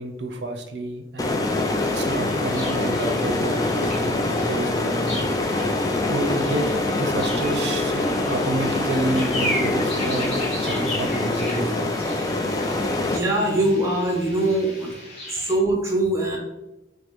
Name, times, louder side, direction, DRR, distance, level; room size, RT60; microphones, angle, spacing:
voice 1, 0.0-1.4 1.9-5.2 6.1-6.7 6.9-11.9, right 2 dB, 80° right, 4 dB, 0.5 m, -29 dB
sound 1, 1.2-13.2, left 2 dB, 20° left, 0.3 m, -24 dB
sound 2, 1.6-15.5, left 1 dB, 40° left, 1.0 m, -36 dB
voice 2, 13.1-14.9 15.3-16.4, right 1 dB, 15° right, -1 dB, 0.7 m, -22 dB
4.8 x 2.0 x 3.0 m, 0.99 s
head